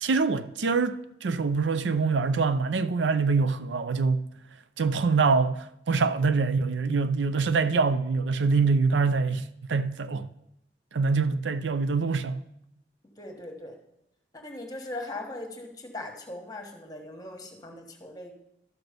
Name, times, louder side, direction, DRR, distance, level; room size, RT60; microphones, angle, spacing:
voice 1, 0.0-4.2 4.8-9.4 9.7-10.3 10.9-12.4, right 4 dB, 90° right, 0.5 m, -25 dB
voice 2, 13.2-13.8 14.3-18.3, left 2 dB, 20° left, 1.3 m, -39 dB
12.0 x 6.1 x 5.1 m
head